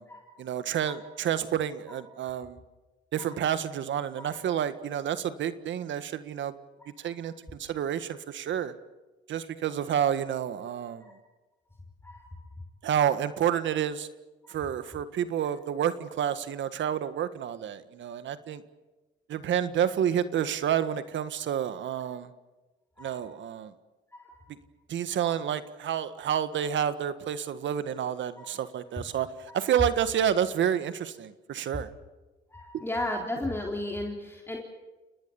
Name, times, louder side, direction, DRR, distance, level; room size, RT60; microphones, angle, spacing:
voice 1, 0.4-2.6 3.1-6.5 7.0-7.3 7.6-8.7 9.3-11.1 12.8-14.1 14.5-18.6 19.3-22.3 23.0-23.7 24.9-31.9 32.7-32.8, right 9 dB, 70° right, 12 dB, 1.7 m, -29 dB
voice 2, 12.0-12.4 14.4-14.6 23.0-23.2 24.1-24.5 25.2-25.4 28.4-28.5 32.5-34.6, left 1 dB, 10° left, 0 dB, 4.0 m, -35 dB
29.5 x 19.5 x 7.1 m, 1.1 s
cardioid pair, 90°, 20 cm